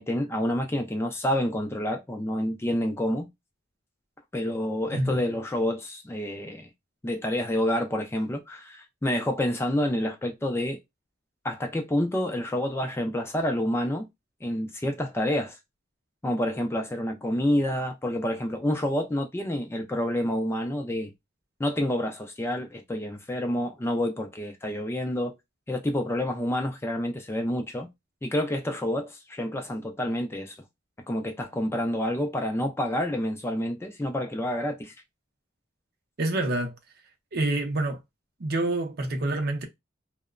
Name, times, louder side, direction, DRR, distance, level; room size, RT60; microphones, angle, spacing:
voice 1, 0.0-3.3 4.3-6.7 7.0-10.8 11.4-14.1 14.4-15.6 16.2-21.1 21.6-25.3 25.7-27.9 28.2-30.6 31.1-35.0, left 1 dB, 15° left, 0.3 m, -28 dB
voice 2, 36.2-36.7 37.3-38.0 38.4-39.7, right 2 dB, 50° right, 0.6 m, -27 dB
2.8 x 2.0 x 2.4 m
head